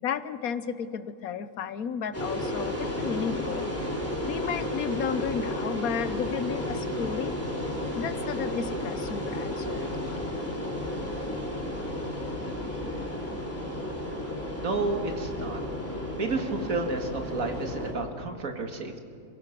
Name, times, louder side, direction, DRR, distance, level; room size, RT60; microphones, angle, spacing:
voice 1, 0.0-3.7 4.3-7.3 8.0-9.9 13.3-13.4, left 7 dB, 85° left, 14 dB, 1.3 m, -33 dB
sound 1, 2.1-17.9, left 1 dB, 10° left, 3.2 m, -33 dB
voice 2, 14.6-15.6 16.2-19.0, right 3 dB, 75° right, 4 dB, 2.3 m, -31 dB
27.0 x 16.5 x 6.0 m, 2.6 s
omnidirectional pair, 1.5 m